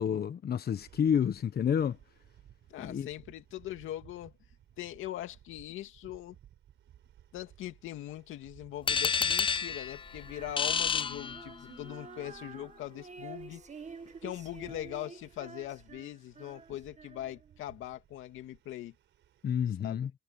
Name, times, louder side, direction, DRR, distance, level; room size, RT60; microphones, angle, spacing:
voice 1, 0.0-2.0 2.8-3.1 19.4-20.1, left 8 dB, 50° left, 1.2 m, -29 dB
sound 1, 0.8-19.6, right 11 dB, 75° right, 4.2 m, -59 dB
voice 2, 2.7-4.3 4.8-6.4 7.3-13.6 14.2-18.9 19.8-20.1, left 13 dB, 85° left, 2.3 m, -41 dB
sound 2, 8.9-11.9, left 6 dB, 25° left, 0.4 m, -30 dB
Female singing, 10.2-17.6, right 5 dB, 35° right, 1.7 m, -49 dB
cardioid pair, 90°, 20 cm